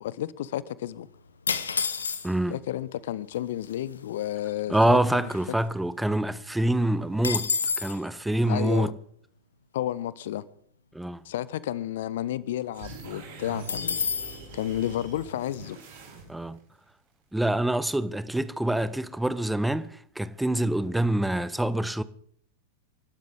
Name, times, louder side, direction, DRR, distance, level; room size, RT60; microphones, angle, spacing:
voice 1, 0.0-1.1 2.5-5.3 8.5-8.9 9.7-10.4 11.2-14.0 14.3-15.8, left 12 dB, 55° left, 0.7 m, -32 dB
sound 1, 1.5-2.6 3.4-3.5 3.6-4.0 4.4-5.9 6.2-6.3 6.6-8.0 13.7-14.4, left 5 dB, 70° left, 1.0 m, -30 dB
voice 2, 2.2-2.6 4.7-7.5 7.8-8.9 10.9-11.2 16.3-16.6 17.3-22.0, right 1 dB, 5° right, 0.8 m, -26 dB
sound 2, 12.7-16.6, right 4 dB, 55° right, 5.4 m, -43 dB
29.0 x 12.5 x 3.8 m
figure-of-eight pair, 90°, 0 cm